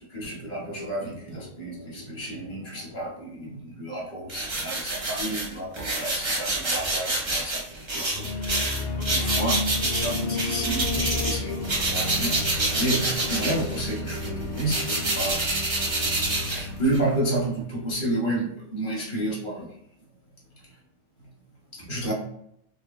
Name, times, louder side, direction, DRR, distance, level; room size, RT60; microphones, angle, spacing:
voice 1, 0.1-7.6 7.9-13.0 13.3-16.0 16.5-19.7 21.7-22.1, right 1 dB, 45° left, -4 dB, 1.0 m, -31 dB
sound 1, 4.3-11.4 11.6-17.1, right 2 dB, 40° right, 0.4 m, -28 dB
sound 2, 8.1-18.1, left 3 dB, 85° left, 0.9 m, -32 dB
3.2 x 2.1 x 2.3 m, 0.74 s
omnidirectional pair, 1.2 m